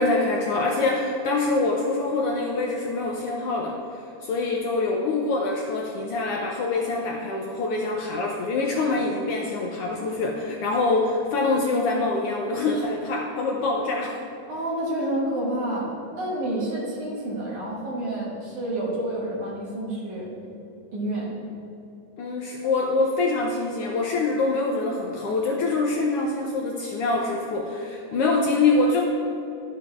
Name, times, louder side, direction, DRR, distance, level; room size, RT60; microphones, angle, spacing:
voice 1, 0.0-14.2 22.2-29.0, left 3 dB, 85° left, 0 dB, 1.3 m, -25 dB
voice 2, 14.5-20.3 20.9-21.3, right 1 dB, 85° right, -7 dB, 3.3 m, -29 dB
12.0 x 7.4 x 2.4 m, 2.8 s
omnidirectional pair, 3.3 m